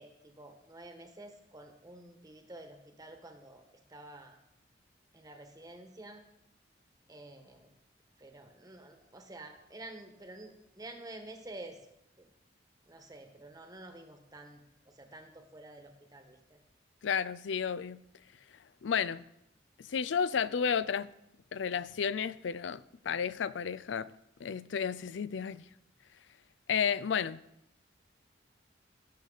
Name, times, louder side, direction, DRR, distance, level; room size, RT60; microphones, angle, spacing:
voice 1, 0.0-3.6 3.9-4.4 5.1-6.2 7.1-7.7 8.2-11.8 12.2-12.3 12.9-16.6, right 2 dB, 20° right, 1.3 m, -49 dB
voice 2, 17.0-18.0 18.8-19.2 19.9-21.1 21.5-24.1 24.4-25.6 26.7-27.4, left 7 dB, 80° left, 0.4 m, -32 dB
17.0 x 6.7 x 4.0 m
head